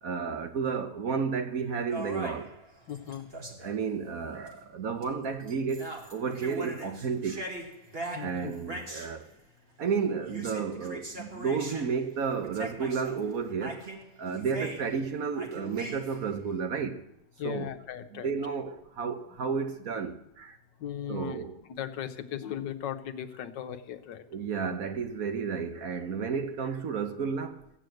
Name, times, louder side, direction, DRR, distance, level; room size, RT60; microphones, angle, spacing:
voice 1, 0.0-2.5 3.6-7.4 8.2-9.3 9.8-13.8 14.2-17.0 17.4-17.7 18.1-20.6 21.1-21.6 24.3-27.6, right 6 dB, 55° right, 1.4 m, -32 dB
sound 1, 1.9-3.8 4.5-4.6 5.0-5.2 5.5-9.1 10.2-11.9 12.3-13.2 13.6-15.0 15.3-16.3, right 1 dB, 35° right, 2.3 m, -41 dB
voice 2, 2.9-3.3 8.1-8.5 17.4-18.3 20.8-21.4 21.6-24.2, left 10 dB, 75° left, 1.5 m, -37 dB
15.5 x 9.0 x 7.8 m
omnidirectional pair, 1.9 m